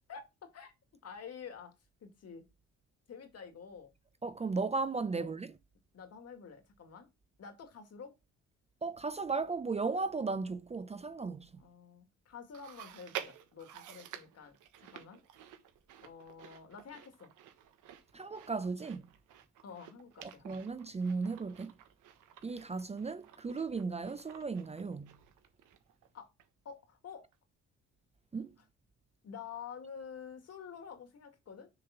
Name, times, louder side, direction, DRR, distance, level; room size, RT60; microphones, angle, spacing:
voice 1, 0.1-0.7 1.0-1.7 2.0-2.4 3.1-3.9 5.2-5.4 5.9-7.1 7.4-8.1 11.6-15.2 16.0-17.3 19.6-20.5 26.1-26.3 26.6-27.3 29.2-31.7, left 6 dB, 55° left, 2.1 m, -49 dB
voice 2, 4.2-5.5 8.8-11.6 18.1-19.1 20.2-21.7 22.4-25.2 28.3-28.5, right 4 dB, 20° right, 0.5 m, -36 dB
Chewing mastication, 12.5-26.1 26.4-26.5 27.3-27.4, right 10 dB, 85° right, 1.3 m, -51 dB
6.7 x 3.7 x 5.7 m
cardioid pair, 90°, 30 cm